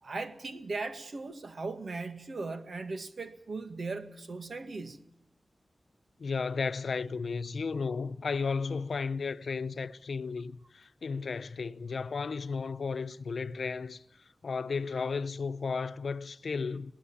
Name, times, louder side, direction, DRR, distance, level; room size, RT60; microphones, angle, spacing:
voice 1, 0.0-5.0, right 3 dB, 70° right, 2.1 m, -38 dB
voice 2, 6.2-14.0 14.4-16.9, left 5 dB, 85° left, 0.8 m, -34 dB
20.0 x 19.0 x 8.7 m
wide cardioid pair, 100°, 0 cm